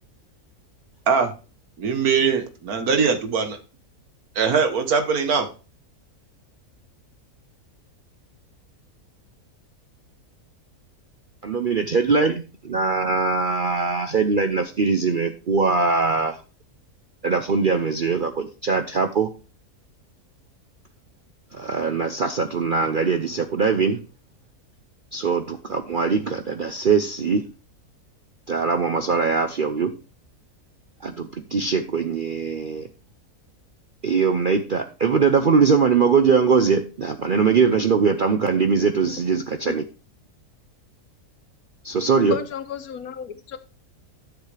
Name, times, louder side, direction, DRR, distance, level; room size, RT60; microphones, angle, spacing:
voice 1, 1.8-3.6 4.4-5.5, right 5 dB, 75° right, 1.7 m, -21 dB
voice 2, 11.4-16.4 17.2-19.3 21.5-24.0 25.1-27.4 28.5-29.9 31.0-32.9 34.0-39.9 41.8-42.4, right 5 dB, 50° right, 0.6 m, -21 dB
voice 3, 42.3-43.6, left 8 dB, 70° left, 1.3 m, -32 dB
11.5 x 7.0 x 3.3 m
omnidirectional pair, 1.6 m